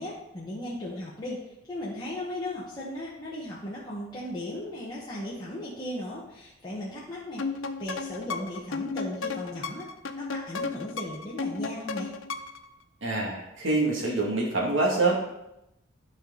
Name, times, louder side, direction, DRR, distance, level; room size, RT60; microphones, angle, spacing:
voice 1, 0.0-1.4 1.7-7.4 7.8-9.9 10.1-12.1, left 1 dB, 20° left, -8 dB, 1.5 m, -36 dB
sound 1, 7.4-12.7, left 4 dB, 75° left, 0.6 m, -34 dB
voice 2, 13.0-15.2, right 2 dB, 70° right, -2 dB, 2.3 m, -25 dB
11.5 x 5.1 x 4.0 m, 0.85 s
head